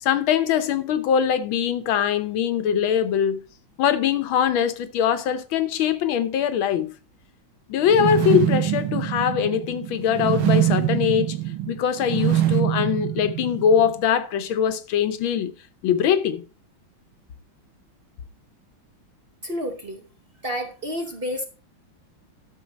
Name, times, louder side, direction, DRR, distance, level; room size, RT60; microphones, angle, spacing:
voice 1, 0.0-3.4 3.8-6.9 7.7-11.4 11.7-15.5 15.8-16.4, left 8 dB, 80° left, 1.6 m, -22 dB
sound 1, 7.9-13.9, right 12 dB, 85° right, 1.9 m, -24 dB
voice 2, 19.4-20.0 20.4-21.4, equal, 35° right, 1.1 m, -30 dB
11.5 x 6.6 x 4.0 m
omnidirectional pair, 2.2 m